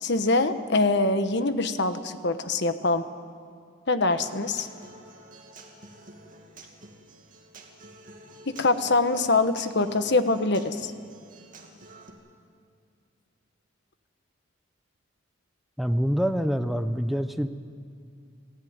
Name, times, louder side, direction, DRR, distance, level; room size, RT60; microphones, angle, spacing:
voice 1, 0.0-3.1 3.9-4.7 8.5-10.9, left 3 dB, 55° left, 9 dB, 1.2 m, -24 dB
Human voice / Acoustic guitar, 4.1-12.1, right 2 dB, 40° right, 2.7 m, -49 dB
voice 2, 15.8-17.5, equal, ahead, 8 dB, 0.8 m, -25 dB
28.5 x 15.5 x 9.5 m, 2.3 s
head